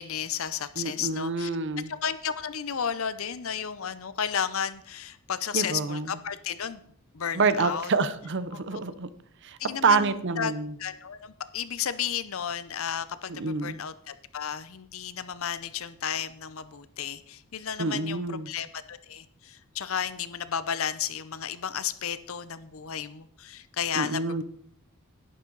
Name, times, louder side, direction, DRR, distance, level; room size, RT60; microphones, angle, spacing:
voice 1, 0.0-1.5 1.9-6.8 7.1-7.9 8.5-8.8 9.6-10.5 10.8-24.4, left 8 dB, 65° left, 13 dB, 0.7 m, -33 dB
voice 2, 0.8-1.9 5.5-6.2 7.3-9.1 9.4-10.7 13.3-13.8 17.8-18.5 24.0-24.4, right 4 dB, 55° right, 14 dB, 0.7 m, -27 dB
11.0 x 10.0 x 4.0 m, 0.67 s
head